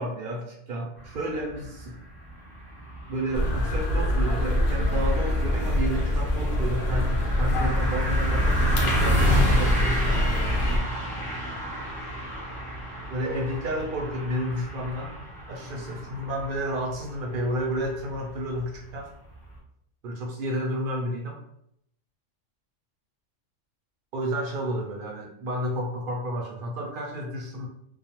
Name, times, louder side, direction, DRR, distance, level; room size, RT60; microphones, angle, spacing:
voice 1, 0.0-2.0 3.1-10.0 13.1-15.1 15.5-19.1 20.0-21.4 24.1-27.7, equal, 60° right, -1 dB, 0.6 m, -31 dB
sound 1, 1.0-19.6, right 1 dB, 10° right, 0.4 m, -32 dB
sound 2, 3.3-10.8, left 1 dB, 60° left, 0.6 m, -24 dB
2.3 x 2.1 x 2.9 m, 0.75 s
omnidirectional pair, 1.3 m